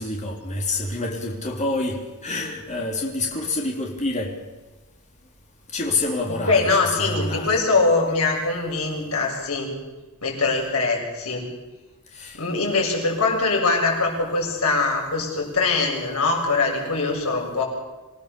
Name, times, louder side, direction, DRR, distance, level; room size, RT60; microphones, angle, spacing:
voice 1, 0.0-4.4 5.7-7.6 12.1-12.4, left 2 dB, 35° left, 0 dB, 3.7 m, -27 dB
voice 2, 6.5-9.8 10.2-11.4 12.3-17.6, left 3 dB, 75° left, -1 dB, 7.2 m, -22 dB
26.5 x 17.5 x 7.0 m, 1.2 s
head